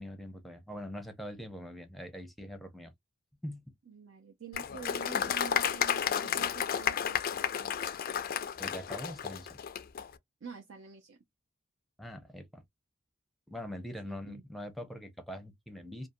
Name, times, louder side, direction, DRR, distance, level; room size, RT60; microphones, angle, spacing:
voice 1, 0.0-2.9 3.4-3.6 8.6-9.6 12.0-12.6 13.5-16.1, equal, ahead, 0.6 m, -43 dB
voice 2, 3.9-7.7 10.4-11.2 14.0-14.4, right 7 dB, 70° right, 0.5 m, -48 dB
Applause, 4.5-10.1, left 8 dB, 45° left, 0.3 m, -32 dB
2.6 x 2.5 x 2.5 m
head